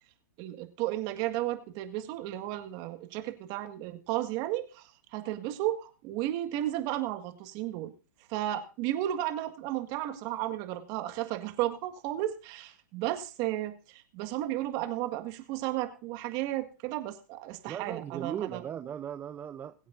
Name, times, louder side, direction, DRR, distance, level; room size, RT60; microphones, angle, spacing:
voice 1, 0.4-7.9 8.3-18.6, right 14 dB, 40° right, 7 dB, 1.8 m, -33 dB
voice 2, 17.7-19.7, right 9 dB, 20° right, 9 dB, 0.6 m, -37 dB
21.5 x 8.4 x 2.6 m, 0.34 s
hypercardioid pair, 120°, 10 cm